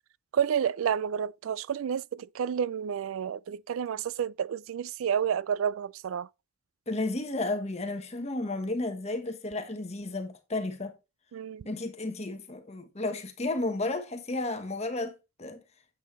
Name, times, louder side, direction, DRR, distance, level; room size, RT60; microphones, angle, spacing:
voice 1, 0.3-6.3 11.3-11.7, right 8 dB, 80° right, 0.3 m, -30 dB
voice 2, 6.9-10.9 11.6-15.6, left 2 dB, 30° left, 1.2 m, -33 dB
9.2 x 7.6 x 3.1 m
head